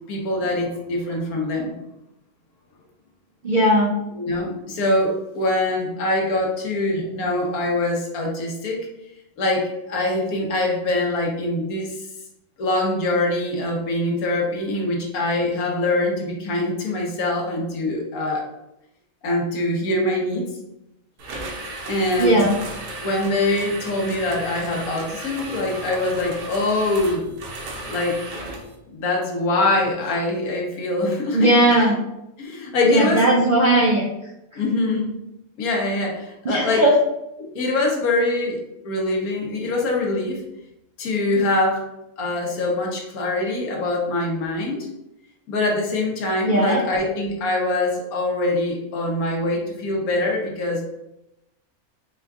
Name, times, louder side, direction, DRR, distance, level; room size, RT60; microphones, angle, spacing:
voice 1, 0.1-1.7 4.1-8.8 9.4-12.1 12.6-18.5 19.2-20.5 21.9-22.4 23.0-27.3 27.9-28.2 28.9-31.5 31.8-31.9 32.4-33.2 34.6-35.1 35.6-36.8 37.4-40.4 41.0-41.8 42.2-44.9 45.5-50.8, left 2 dB, 80° left, 0 dB, 1.4 m, -23 dB
voice 2, 3.4-3.9 22.2-22.6 31.3-32.0 32.8-34.0 36.4-36.9 46.4-46.8, right 1 dB, 60° right, -3 dB, 0.5 m, -17 dB
sound 1, 21.2-28.8, right 2 dB, 90° right, 1.3 m, -35 dB
4.3 x 2.3 x 3.5 m, 0.88 s
omnidirectional pair, 1.5 m